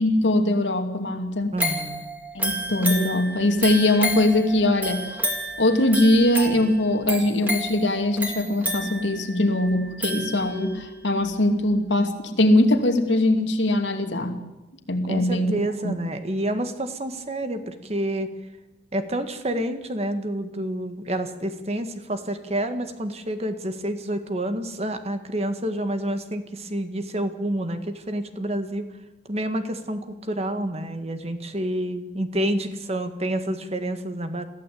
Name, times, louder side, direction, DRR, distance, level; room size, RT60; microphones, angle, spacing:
voice 1, 0.0-1.6 2.3-5.2 5.6-14.4 14.9-15.5 15.8-15.9, left 1 dB, 85° left, 5 dB, 2.6 m, -21 dB
voice 2, 1.5-2.0 15.1-18.3 18.9-28.9 29.3-34.5, right 1 dB, 35° right, 8 dB, 1.8 m, -28 dB
sound 1, 1.6-10.8 11.3-11.4, equal, 10° right, 3.3 m, -31 dB
23.0 x 15.0 x 8.6 m, 1.1 s
head